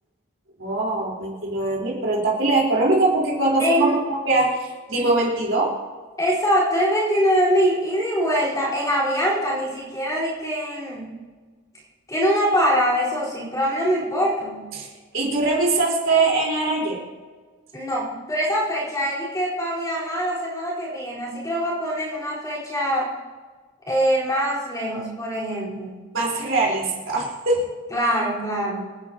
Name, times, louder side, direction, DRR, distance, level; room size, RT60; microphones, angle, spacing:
voice 1, 0.6-4.0 4.2-5.7 14.7-14.9 15.1-17.0 26.1-27.7, right 2 dB, 60° right, -3 dB, 4.3 m, -22 dB
voice 2, 3.6-3.9 6.2-11.1 12.1-14.7 17.7-23.1 23.9-26.0 27.9-28.9, equal, 15° left, -7 dB, 4.4 m, -23 dB
28.0 x 10.5 x 3.0 m, 1.4 s
head